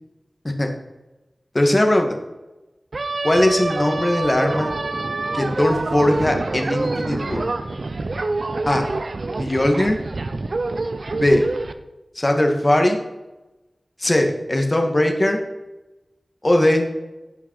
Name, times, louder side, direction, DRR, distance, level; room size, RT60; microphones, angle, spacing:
voice 1, 1.5-2.2 3.2-4.7 5.3-7.5 8.7-8.8 9.4-10.0 11.2-11.4 12.2-13.0 14.0-15.4 16.4-16.9, left 1 dB, 35° left, 3 dB, 2.1 m, -19 dB
sound 1, 2.9-11.7, right 3 dB, 75° right, 0.7 m, -26 dB
17.0 x 5.7 x 4.9 m, 1.0 s
cardioid pair, 40°, 0 cm